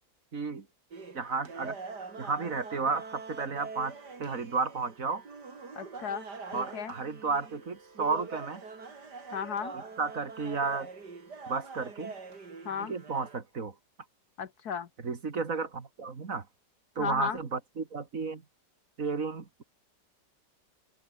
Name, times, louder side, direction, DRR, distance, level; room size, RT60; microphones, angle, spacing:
voice 1, 0.3-0.7 1.1-1.8 2.2-5.2 6.5-8.6 9.7-10.9 11.5-12.1 12.8-13.7 15.0-16.5 17.0-18.4 19.0-19.6, right 4 dB, 50° right, 2.4 m, -33 dB
sound 1, 0.9-13.4, right 4 dB, 65° right, 3.7 m, -44 dB
voice 2, 5.7-6.9 9.3-9.7 12.6-12.9 14.4-14.9 17.0-17.4, left 7 dB, 60° left, 1.7 m, -35 dB
open air
omnidirectional pair, 1.9 m